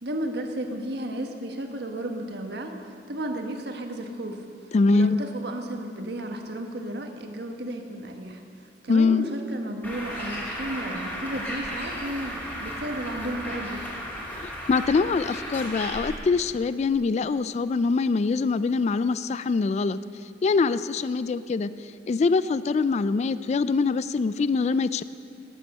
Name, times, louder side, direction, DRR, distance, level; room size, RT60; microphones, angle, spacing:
voice 1, 0.0-4.4 4.9-8.4 8.8-13.8, right 1 dB, 65° right, 4 dB, 1.4 m, -33 dB
voice 2, 4.7-5.2 8.9-9.2 14.3-20.0 20.4-25.0, left 4 dB, 40° left, 15 dB, 0.3 m, -24 dB
Bird, 9.8-16.2, equal, 10° left, 2.6 m, -35 dB
15.0 x 10.5 x 6.7 m, 2.3 s
head